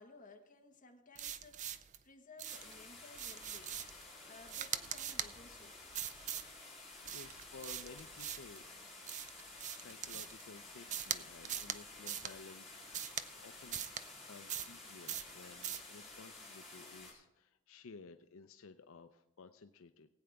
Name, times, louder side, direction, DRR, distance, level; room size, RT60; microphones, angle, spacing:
voice 1, 0.0-5.8 7.8-8.0, left 3 dB, 35° left, 2 dB, 1.4 m, -58 dB
sound 1, 1.1-2.0 2.4-2.7 3.1-4.0 4.5-5.3 5.9-6.5 7.0-8.6 9.1-10.4 10.9-11.2 11.4-11.8 12.1-12.3 12.9-13.3 13.7-14.0 14.5-14.8 15.1-15.3 15.6-15.9, right 9 dB, 35° right, 0.4 m, -41 dB
sound 2, 2.4-17.1, left 2 dB, ahead, 4.0 m, -53 dB
voice 2, 6.3-8.9 9.7-13.8 14.2-20.1, left 4 dB, 70° left, 8 dB, 0.5 m, -56 dB
19.0 x 8.6 x 3.5 m, 0.94 s
head